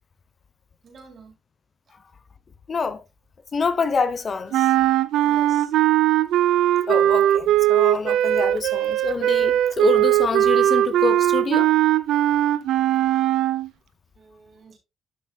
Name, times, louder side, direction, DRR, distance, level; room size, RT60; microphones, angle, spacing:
voice 1, 0.8-1.3 5.2-5.7 14.1-14.8, right 5 dB, 50° right, 3.6 m, -48 dB
voice 2, 2.7-3.0 3.5-4.7 6.9-11.7, left 5 dB, 40° left, 0.8 m, -26 dB
sound 1, 4.5-13.7, right 13 dB, 85° right, 0.5 m, -19 dB
12.0 x 6.3 x 2.3 m
cardioid pair, 90°, 0 cm